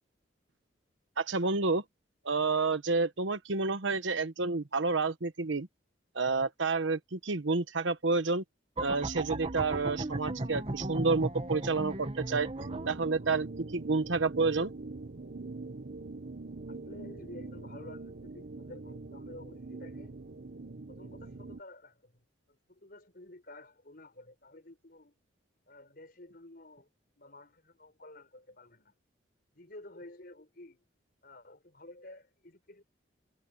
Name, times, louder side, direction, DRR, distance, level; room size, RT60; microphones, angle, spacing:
voice 1, 1.2-1.8 2.2-5.7 6.1-8.4 8.8-12.5 12.9-14.7, right 3 dB, 80° right, 1.1 m, -29 dB
sound 1, 8.8-13.0, right 2 dB, 30° right, 1.3 m, -36 dB
sound 2, 12.6-21.6, right 3 dB, 55° right, 0.8 m, -43 dB
voice 2, 16.7-20.2 20.9-22.2 22.5-25.1 25.7-26.9 27.2-28.9 29.5-30.8 31.2-32.8, left 1 dB, 50° left, 5.1 m, -51 dB
head